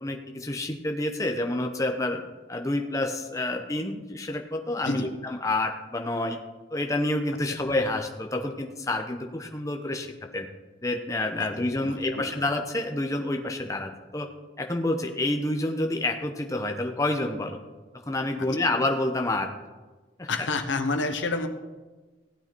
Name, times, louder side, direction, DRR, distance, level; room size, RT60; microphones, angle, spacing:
voice 1, 0.0-2.2 2.5-6.4 6.7-10.5 10.8-14.3 14.6-17.6 18.1-19.5 20.2-20.3, left 2 dB, 15° left, 4 dB, 0.9 m, -28 dB
voice 2, 11.8-12.3 18.4-18.7 20.3-21.5, left 3 dB, 80° left, 7 dB, 1.1 m, -29 dB
16.0 x 8.8 x 4.5 m, 1.3 s
head